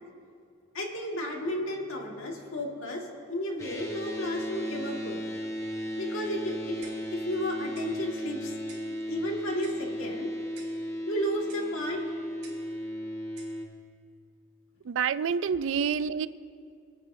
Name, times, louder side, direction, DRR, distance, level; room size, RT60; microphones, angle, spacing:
voice 1, 0.7-5.2 6.0-6.9 7.1-8.6 9.1-10.3 11.1-12.0, equal, 85° left, 0 dB, 1.9 m, -33 dB
sound 1, 3.6-13.7, equal, 15° left, 1.0 m, -35 dB
Clock, 6.8-7.2 7.7-7.9 8.7-8.9 9.6-9.9 10.5-10.8 11.5-11.7 12.4-12.7 13.4-13.6, right 4 dB, 50° right, 3.5 m, -52 dB
voice 2, 14.8-16.3, right 7 dB, 70° right, 15 dB, 0.3 m, -27 dB
26.5 x 9.4 x 2.7 m, 2.3 s
head